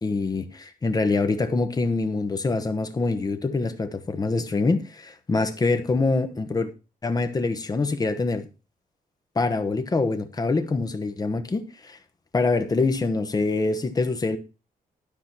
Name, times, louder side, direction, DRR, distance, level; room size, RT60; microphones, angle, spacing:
voice 1, 0.0-6.7 7.0-8.5 9.3-12.0 12.3-14.4, left 3 dB, 25° left, 1.1 m, -25 dB
12.0 x 5.0 x 5.9 m
wide cardioid pair, 160°, 15 cm